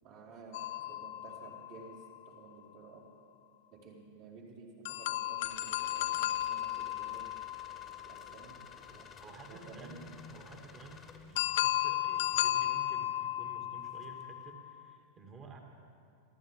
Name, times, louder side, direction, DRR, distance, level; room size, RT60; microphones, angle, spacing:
voice 1, 0.0-3.1 3.7-7.3 8.0-9.1 9.5-10.1, right 3 dB, 50° right, -6 dB, 4.6 m, -53 dB
sound 1, 0.5-2.3 4.9-8.8 11.4-14.8, left 14 dB, 55° left, 0.4 m, -35 dB
sound 2, 5.4-12.0 13.7-14.3, left 6 dB, 20° left, 1.3 m, -54 dB
voice 2, 9.2-15.6, right 3 dB, 30° right, 2 dB, 2.4 m, -51 dB
26.5 x 14.0 x 3.8 m, 2.3 s
figure-of-eight pair, 90°, 0 cm